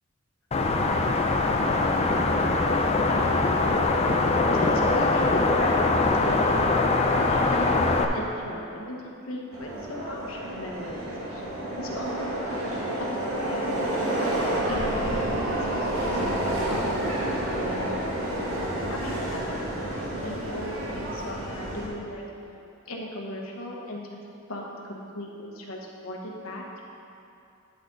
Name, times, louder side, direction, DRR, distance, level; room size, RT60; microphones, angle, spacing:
sound 1, 0.5-8.0, left 3 dB, 30° left, 0.5 m, -22 dB
voice 1, 2.9-3.8 4.5-5.9 6.2-11.4 11.8-12.4 12.6-13.9 14.6-18.2 18.9-22.2 22.9-24.2 24.5-26.6, left 1 dB, 90° left, -1 dB, 1.2 m, -38 dB
Subway metro underground, 9.5-21.9, right 1 dB, 80° right, 1.7 m, -29 dB
10.0 x 6.2 x 4.0 m, 2.7 s
head